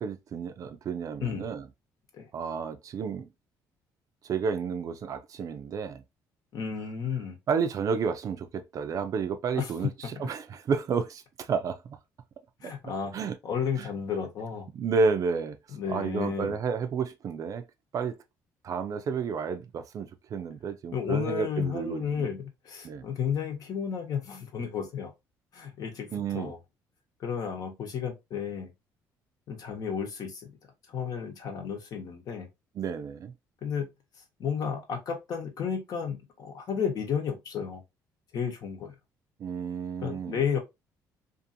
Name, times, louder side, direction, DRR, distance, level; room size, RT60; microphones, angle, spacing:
voice 1, 0.0-1.7 2.3-3.3 4.2-6.0 7.5-9.9 10.2-12.0 12.6-13.3 13.8-13.9 14.7-15.6 15.9-17.6 17.9-18.2 18.6-22.3 22.8-23.1 26.1-26.5 32.8-33.3 39.4-40.4, right 5 dB, 50° right, 0.4 m, -31 dB
voice 2, 6.5-7.4 9.6-9.7 10.2-10.3 12.6-13.1 13.4-14.7 15.7-16.6 20.9-25.1 25.5-26.6 27.2-28.7 29.5-30.5 30.9-32.5 33.6-33.9 34.4-37.8 38.3-38.9 40.0-40.6, left 7 dB, 55° left, 1.0 m, -32 dB
2.6 x 2.5 x 2.6 m
cardioid pair, 100°, 8 cm